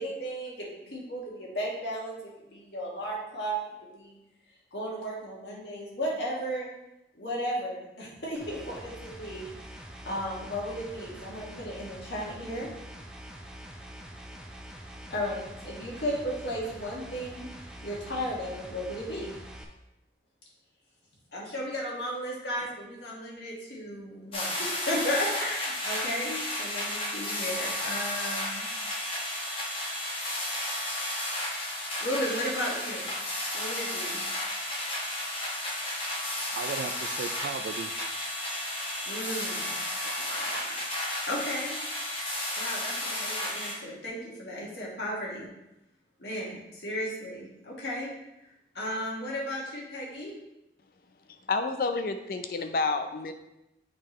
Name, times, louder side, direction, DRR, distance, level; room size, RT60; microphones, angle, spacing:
voice 1, 0.0-3.6 3.9-4.2 4.7-6.7 7.1-9.5 10.0-12.7 15.1-17.4 17.8-19.3 21.3-28.7 32.0-33.1 33.5-34.2 39.1-39.7 41.2-41.7 42.6-45.5 46.2-48.1 48.7-50.3, equal, 80° left, 1.8 m, -34 dB
sound 1, 8.4-19.6, equal, 5° right, 0.5 m, -45 dB
sound 2, 24.3-43.7, left 1 dB, 30° left, 1.2 m, -33 dB
voice 2, 36.2-37.9 38.9-39.3 40.0-40.9, right 5 dB, 75° right, 0.3 m, -39 dB
voice 3, 51.3-53.3, left 3 dB, 55° left, 0.4 m, -29 dB
8.6 x 3.8 x 3.0 m
head